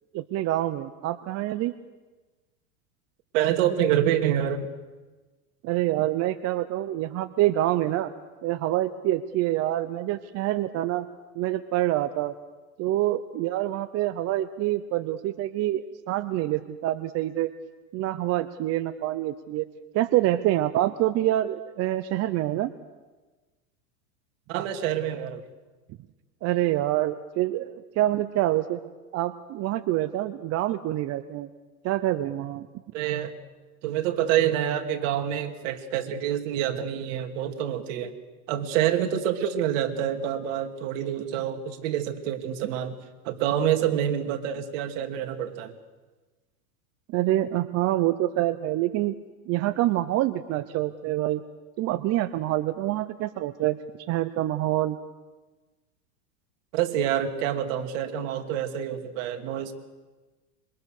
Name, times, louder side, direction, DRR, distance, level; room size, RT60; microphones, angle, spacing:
voice 1, 0.1-1.7 5.6-8.1 8.4-11.1 11.4-12.3 12.8-17.5 17.9-19.7 19.9-22.7 26.4-28.8 29.1-31.5 31.8-32.7 47.1-49.1 49.5-51.4 51.8-53.8 54.1-55.0, right 14 dB, 35° right, 11 dB, 0.8 m, -26 dB
voice 2, 3.3-4.7 24.5-25.4 32.9-33.3 33.8-38.1 38.5-43.0 43.2-45.7 56.7-59.7, right 10 dB, 60° right, 5 dB, 2.8 m, -27 dB
26.0 x 24.5 x 6.7 m, 1.2 s
supercardioid pair, 135°, 44 cm